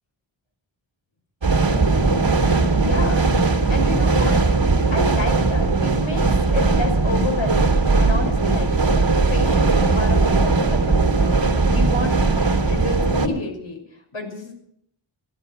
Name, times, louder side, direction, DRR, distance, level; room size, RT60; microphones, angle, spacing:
sound 1, 1.4-13.3, right 3 dB, 65° right, 2.9 m, -19 dB
voice 1, 2.8-3.3 3.7-8.9 9.3-12.2 12.6-13.8 14.1-14.5, left 3 dB, 75° left, 1 dB, 6.1 m, -30 dB
16.0 x 12.5 x 6.7 m, 0.69 s
wide cardioid pair, 85°, 48 cm